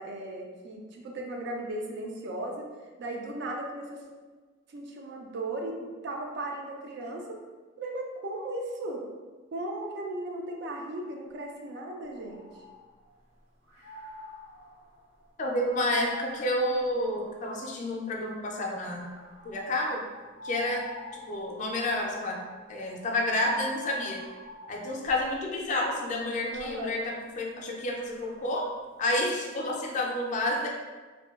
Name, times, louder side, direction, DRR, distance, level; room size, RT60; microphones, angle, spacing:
voice 1, 0.0-2.7 3.0-4.0 4.7-7.4 7.8-9.0 9.5-12.5 26.5-27.0, right 1 dB, 60° right, 1 dB, 0.4 m, -36 dB
sound 1, 12.1-13.2 13.6-18.0 18.7-25.4 26.2-28.8, right 1 dB, 85° right, 1.1 m, -47 dB
voice 2, 15.4-19.1 19.4-20.0 20.4-20.9 21.1-22.4 22.7-24.2 24.7-28.7 29.0-30.7, left 1 dB, 40° left, 0 dB, 0.3 m, -30 dB
2.6 x 2.2 x 2.3 m, 1.4 s
head